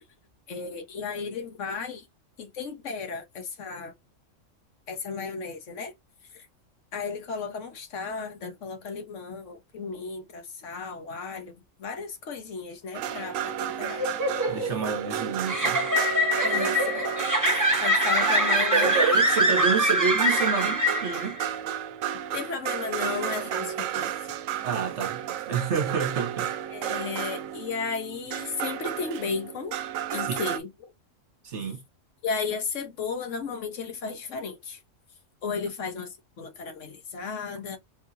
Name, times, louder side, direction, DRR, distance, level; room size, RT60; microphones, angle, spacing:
voice 1, 0.5-2.0 2.4-3.9 4.9-5.9 6.9-14.0 16.4-17.0 17.4-18.9 22.3-24.1 26.7-29.8 30.1-30.7 32.2-34.8 35.4-37.8, left 5 dB, 70° left, 1.3 m, -34 dB
sound 1, 12.9-30.6, right 10 dB, 85° right, 1.0 m, -32 dB
sound 2, 13.8-21.4, equal, 15° right, 1.1 m, -24 dB
voice 2, 14.5-15.9 18.7-21.4 24.6-26.5 30.2-30.4 31.4-31.8, right 5 dB, 65° right, 1.3 m, -29 dB
4.8 x 2.8 x 2.5 m
omnidirectional pair, 1.3 m